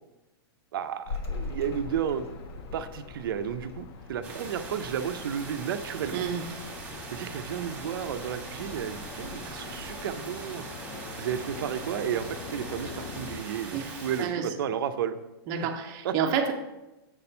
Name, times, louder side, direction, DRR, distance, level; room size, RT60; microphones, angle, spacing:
voice 1, 0.7-2.3 2.7-6.2 7.1-10.6 11.2-15.2 16.0-16.1, right 8 dB, 60° right, 9 dB, 0.6 m, -32 dB
sound 1, 1.0-10.4, left 3 dB, 85° left, 1.3 m, -43 dB
sound 2, 1.3-13.4, left 6 dB, 25° left, 0.4 m, -45 dB
sound 3, 4.2-14.2, right 3 dB, 10° right, 1.5 m, -41 dB
voice 2, 6.1-6.6 13.7-14.5 15.5-16.5, right 7 dB, 25° right, 5 dB, 0.7 m, -30 dB
7.4 x 4.3 x 5.5 m, 1.0 s
hypercardioid pair, 165°, 13 cm